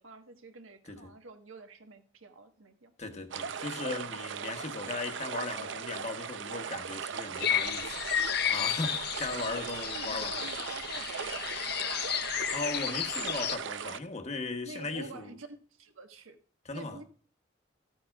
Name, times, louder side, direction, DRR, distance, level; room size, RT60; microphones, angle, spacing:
voice 1, 0.0-2.9 8.9-9.1 9.9-12.3 14.6-16.4 16.7-17.0, right 3 dB, 80° right, 1.3 m, -48 dB
voice 2, 3.0-10.5 12.5-15.3 16.7-17.0, left 3 dB, 35° left, 1.0 m, -38 dB
sound 1, 3.3-14.0, right 7 dB, 65° right, 0.5 m, -38 dB
sound 2, 7.4-13.6, left 10 dB, 50° left, 0.5 m, -32 dB
12.5 x 8.9 x 2.3 m
head